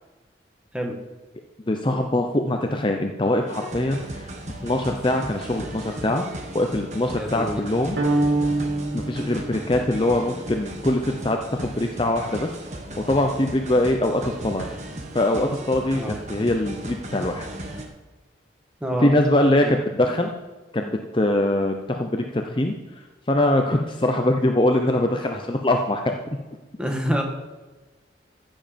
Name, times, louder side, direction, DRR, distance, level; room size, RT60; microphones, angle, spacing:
voice 1, 1.7-4.3 4.6-6.2 6.5-8.0 8.9-12.5 13.0-14.8 15.1-17.5 19.0-20.3 20.7-22.7 23.3-26.2, left 1 dB, 25° left, 3 dB, 0.7 m, -23 dB
sound 1, 3.5-17.9, right 1 dB, 40° right, 1.4 m, -36 dB
voice 2, 7.2-7.6 16.0-16.2 18.8-19.1 19.6-19.7 26.8-27.2, equal, 5° right, 2 dB, 1.5 m, -27 dB
sound 2, 8.0-10.3, right 2 dB, 80° right, 2.6 m, -25 dB
15.0 x 7.2 x 5.2 m, 1.2 s
head